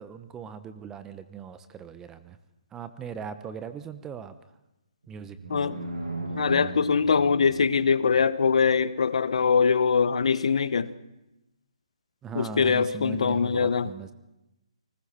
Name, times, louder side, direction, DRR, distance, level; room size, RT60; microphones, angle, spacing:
voice 1, 0.0-2.4 2.7-4.6 5.1-5.6 6.4-6.5 12.2-14.1, right 6 dB, 15° right, 0.9 m, -39 dB
sound 1, 5.0-8.3, right 2 dB, 75° right, 7.3 m, -36 dB
voice 2, 6.3-10.9 12.3-13.9, left 5 dB, 65° left, 1.0 m, -23 dB
29.5 x 20.0 x 4.4 m
figure-of-eight pair, 145°, 4 cm